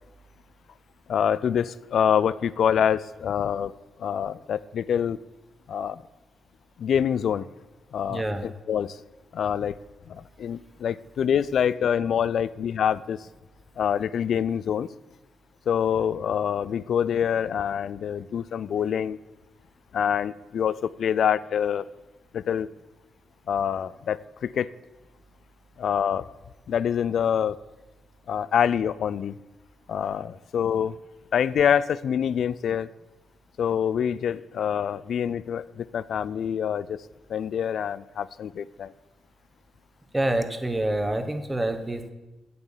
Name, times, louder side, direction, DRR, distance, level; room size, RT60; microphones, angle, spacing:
voice 1, 1.1-3.7 4.0-5.2 5.7-6.0 6.8-7.5 7.9-9.0 9.3-9.8 10.1-13.3 13.8-14.9 15.7-19.2 19.9-21.9 22.3-22.7 23.5-24.7 25.8-26.2 26.7-27.6 28.3-29.4 29.9-31.0 31.3-32.9 33.6-37.0 37.3-38.9, left 8 dB, 70° left, 18 dB, 0.4 m, -26 dB
voice 2, 8.1-8.4 40.1-42.1, right 1 dB, 15° right, 7 dB, 1.2 m, -27 dB
8.3 x 7.9 x 7.3 m, 1.1 s
cardioid pair, 90°, 0 cm